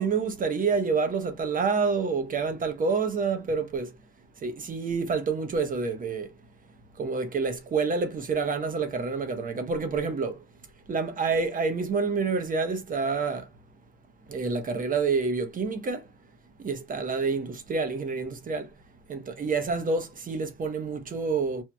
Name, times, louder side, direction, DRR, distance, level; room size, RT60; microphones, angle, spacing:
voice 1, 0.0-3.9 4.4-6.3 7.0-10.4 10.9-13.5 14.3-16.1 16.6-18.7 19.1-21.6, right 4 dB, 45° right, 1.1 m, -28 dB
4.6 x 2.4 x 2.3 m
cardioid pair, 90°, 20 cm